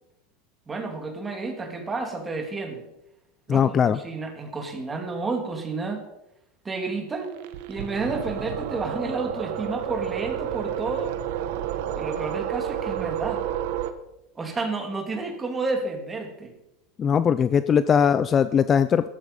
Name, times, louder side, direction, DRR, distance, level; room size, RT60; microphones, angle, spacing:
voice 1, 0.7-2.8 3.5-6.0 6.6-7.4 7.7-11.1 12.0-13.4 14.4-16.5, right 3 dB, 15° right, 4 dB, 2.9 m, -31 dB
voice 2, 3.5-4.0 17.0-19.1, left 7 dB, 25° left, 14 dB, 0.5 m, -20 dB
sound 1, 7.2-13.9, right 10 dB, 70° right, 1.3 m, -30 dB
14.5 x 13.0 x 5.5 m, 0.87 s
supercardioid pair, 145°, 0 cm